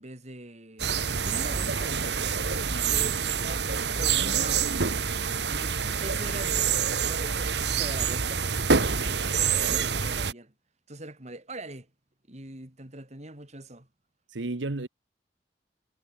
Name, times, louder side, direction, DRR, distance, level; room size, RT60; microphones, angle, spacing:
voice 1, 0.0-2.3 2.8-4.7 5.5-10.5 10.9-11.9 12.3-13.9, right 2 dB, 40° right, 3.5 m, -42 dB
sound 1, 0.8-10.3, right 6 dB, 65° right, 1.6 m, -27 dB
voice 2, 2.7-3.2 14.3-14.9, right 2 dB, 90° right, 1.1 m, -34 dB
head